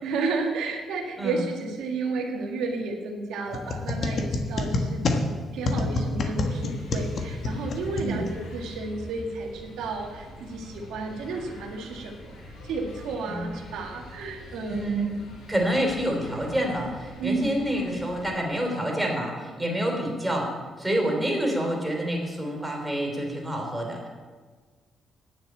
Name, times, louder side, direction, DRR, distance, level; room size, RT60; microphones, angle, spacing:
voice 1, 0.0-15.0 17.2-17.6, right 3 dB, 90° right, 1 dB, 1.7 m, -32 dB
sound 1, 3.5-8.6, left 2 dB, 55° left, 1.3 m, -28 dB
sound 2, 6.4-18.3, left 1 dB, 90° left, 4.6 m, -44 dB
voice 2, 14.7-15.1 15.5-20.5 20.8-24.1, right 1 dB, 5° right, 0 dB, 3.5 m, -27 dB
9.6 x 7.4 x 8.7 m, 1.5 s
cardioid pair, 90°, 0 cm